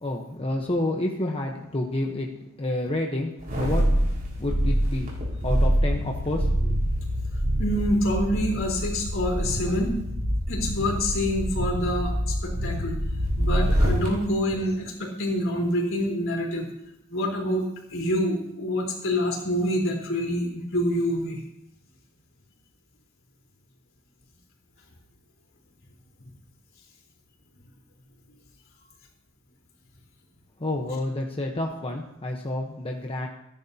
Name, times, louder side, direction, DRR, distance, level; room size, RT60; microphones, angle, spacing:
voice 1, 0.0-2.3 2.6-3.9 4.4-5.1 5.4-6.8 30.6-33.3, left 1 dB, 25° left, 1 dB, 1.1 m, -29 dB
sound 1, 3.4-14.1 14.5-14.6, equal, 45° right, 4.9 m, -25 dB
voice 2, 7.6-9.9 10.5-13.0 13.4-16.7 17.1-21.4, equal, 65° left, -1 dB, 4.1 m, -26 dB
27.0 x 10.5 x 2.9 m, 0.84 s
head